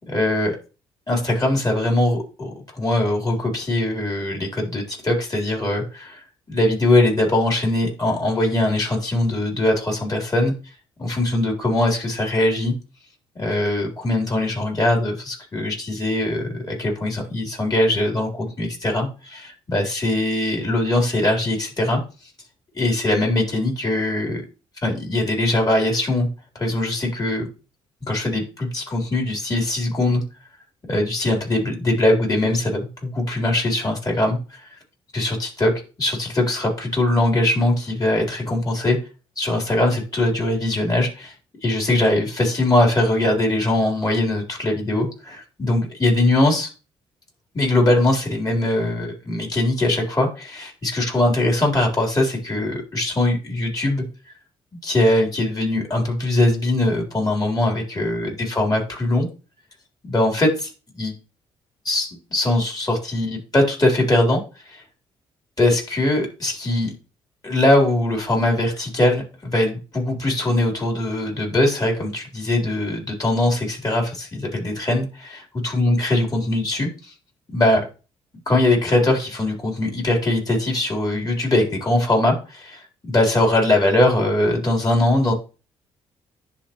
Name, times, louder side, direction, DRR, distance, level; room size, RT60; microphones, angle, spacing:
voice 1, 0.1-0.6 1.1-6.2 6.5-10.5 11.0-12.7 13.4-22.0 22.7-24.4 24.8-26.3 26.5-27.5 28.1-30.2 30.9-34.6 35.1-35.7 36.0-39.0 39.4-41.3 41.6-46.7 47.5-54.0 54.8-59.3 60.0-61.1 61.8-64.8 65.6-66.9 67.4-76.9 77.5-77.9 78.5-85.3, left 1 dB, 25° left, 0 dB, 3.9 m, -21 dB
10.5 x 4.1 x 3.1 m, 0.32 s
hypercardioid pair, 45°, 14 cm